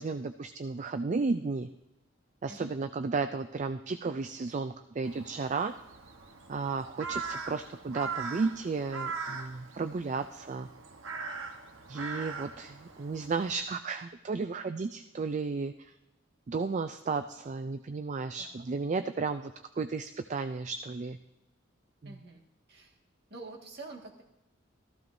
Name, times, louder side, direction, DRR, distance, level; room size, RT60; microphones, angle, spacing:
voice 1, 0.0-1.7 2.4-5.7 6.5-10.7 11.9-15.9 16.5-21.2 22.0-22.2, right 4 dB, 35° right, 9 dB, 0.4 m, -33 dB
Crow, 5.0-13.5, right 4 dB, 75° right, 1.1 m, -41 dB
voice 2, 22.0-22.4 22.7-23.0 23.3-24.2, right 3 dB, 55° right, 0 dB, 1.8 m, -47 dB
15.0 x 14.0 x 2.6 m, 0.92 s
head